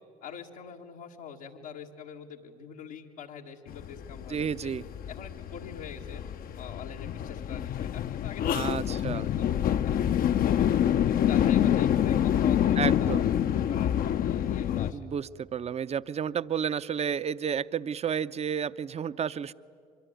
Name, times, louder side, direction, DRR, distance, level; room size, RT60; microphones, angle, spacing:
voice 1, 0.2-4.7 5.1-6.2 6.6-9.5 9.8-15.1, left 7 dB, 90° left, -2 dB, 1.9 m, -44 dB
sound 1, 3.7-14.9, left 10 dB, 50° left, 0.7 m, -27 dB
voice 2, 4.3-4.8 8.5-9.3 12.8-13.3 14.9-19.5, right 7 dB, 35° right, 15 dB, 0.7 m, -31 dB
24.0 x 23.0 x 9.2 m, 2.4 s
hypercardioid pair, 65°, 19 cm